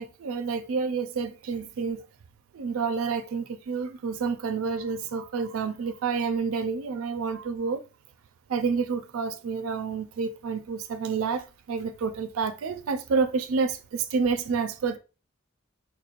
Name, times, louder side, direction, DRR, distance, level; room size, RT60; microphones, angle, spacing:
voice 1, 0.0-2.1 2.5-7.8 8.5-11.4 11.7-15.0, right 5 dB, 80° right, 0.4 m, -29 dB
4.2 x 3.0 x 2.4 m
head